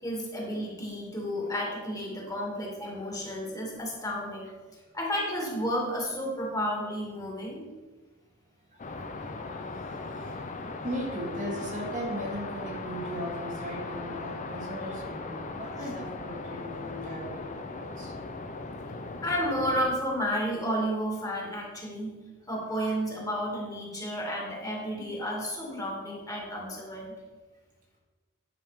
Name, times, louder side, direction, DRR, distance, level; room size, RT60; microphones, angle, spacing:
voice 1, 0.0-4.5 4.9-7.6 19.2-22.2 22.5-27.1, equal, 15° left, -2 dB, 2.2 m, -32 dB
sound 1, 8.8-19.9, left 3 dB, 35° left, 0.7 m, -38 dB
voice 2, 9.1-10.4 10.8-18.1 26.9-27.0, equal, 35° right, -1 dB, 1.7 m, -38 dB
10.5 x 5.7 x 5.0 m, 1.3 s
head